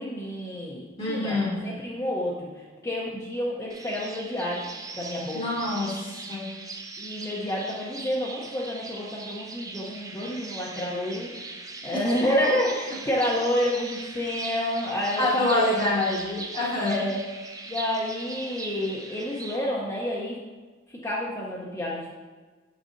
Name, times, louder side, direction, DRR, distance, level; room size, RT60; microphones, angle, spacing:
voice 1, 0.0-2.5 2.8-4.7 4.9-5.4 7.0-11.3 11.8-15.6 16.8-17.2 17.7-20.4 21.0-22.2, left 1 dB, 15° left, -6 dB, 0.7 m, -29 dB
voice 2, 1.0-1.6 5.3-6.0 6.3-6.5 15.2-17.1, left 2 dB, 30° left, -5 dB, 1.1 m, -26 dB
sound 1, 3.7-19.6, right 3 dB, 15° right, 0.5 m, -40 dB
7.3 x 6.3 x 2.6 m, 1.3 s
head